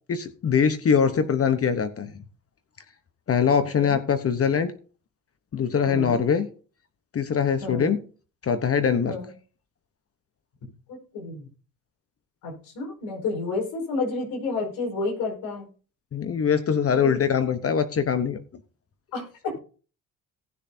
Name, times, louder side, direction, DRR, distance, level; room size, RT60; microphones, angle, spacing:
voice 1, 0.1-2.1 3.3-4.7 5.5-6.5 7.1-8.0 8.4-9.2 16.1-18.4, left 7 dB, 45° left, 1.0 m, -23 dB
voice 2, 3.6-4.0 5.8-6.2 7.6-7.9 9.0-9.3 10.9-11.5 12.4-15.7 16.9-17.3 19.1-19.6, left 3 dB, 80° left, 4.8 m, -31 dB
18.0 x 6.7 x 2.8 m
supercardioid pair, 60°, 33 cm